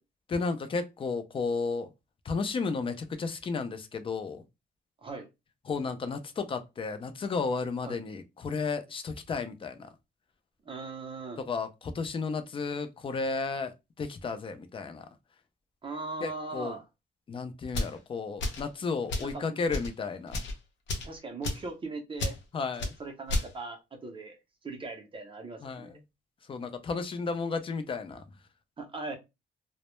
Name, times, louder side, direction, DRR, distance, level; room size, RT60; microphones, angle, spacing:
voice 1, 0.3-1.9 2.3-4.4 5.7-9.9 11.4-15.1 16.2-16.8 17.3-20.4 22.5-22.9 25.6-26.0 26.5-28.2, left 4 dB, 30° left, 0.4 m, -33 dB
voice 2, 10.7-11.4 15.8-16.8 19.2-19.6 21.0-22.4 22.8-24.4 24.6-26.0 28.8-29.2, right 3 dB, 25° right, 0.5 m, -39 dB
sound 1, 17.7-18.0 18.4-18.7 19.1-19.3 19.7-19.9 20.3-20.5 20.9-21.1 21.4-21.7 22.2-22.4 22.8-22.9 23.3-23.5, left 1 dB, 75° left, 0.6 m, -31 dB
2.1 x 2.0 x 2.9 m
cardioid pair, 145°, 19 cm